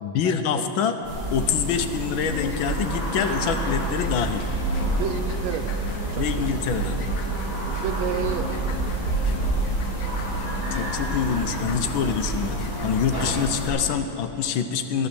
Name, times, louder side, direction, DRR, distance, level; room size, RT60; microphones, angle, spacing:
voice 1, 0.0-1.0 1.3-4.5 6.1-7.0 10.7-15.1, left 7 dB, 80° left, 7 dB, 1.6 m, -26 dB
sound 1, 1.0-13.7, right 2 dB, 30° right, 3.1 m, -28 dB
sound 2, 1.9-13.9, left 6 dB, 55° left, 1.0 m, -39 dB
voice 2, 5.0-5.8 6.1-6.4 7.6-9.3, right 8 dB, 85° right, 9 dB, 1.5 m, -32 dB
13.0 x 12.5 x 6.8 m, 2.9 s
omnidirectional pair, 2.2 m